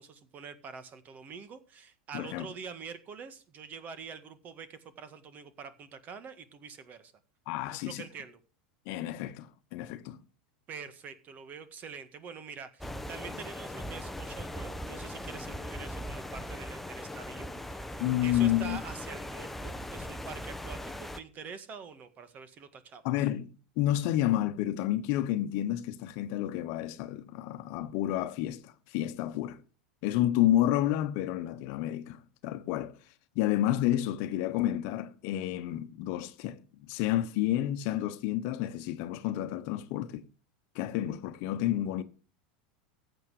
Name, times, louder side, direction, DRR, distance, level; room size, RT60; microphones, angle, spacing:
voice 1, 0.0-7.1 7.7-8.4 10.7-23.0, right 6 dB, 40° right, 1.7 m, -45 dB
voice 2, 2.1-2.5 7.5-8.0 8.9-10.2 18.0-18.8 23.0-29.6 30.0-32.9 33.3-40.2 40.7-42.0, left 13 dB, 60° left, 1.1 m, -30 dB
sound 1, 12.8-21.2, left 1 dB, 5° left, 0.9 m, -39 dB
14.5 x 8.1 x 4.9 m
hypercardioid pair, 100°, 5 cm